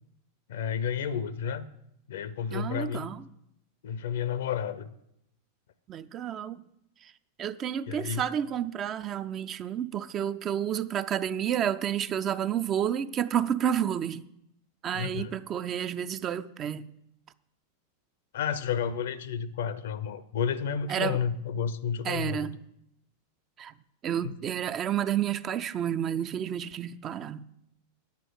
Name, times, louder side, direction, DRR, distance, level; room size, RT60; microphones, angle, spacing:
voice 1, 0.5-1.6 2.1-3.1 3.8-4.9 7.9-8.2 14.9-15.3 18.3-22.5 24.2-24.3, left 7 dB, 60° left, 0.6 m, -31 dB
voice 2, 2.5-3.3 5.9-6.6 7.0-7.1 7.4-14.3 14.8-16.9 20.9-21.2 22.0-22.6 23.6-23.7 24.0-27.4, right 9 dB, 30° right, 0.4 m, -30 dB
9.2 x 8.2 x 6.4 m
figure-of-eight pair, 90°, 0 cm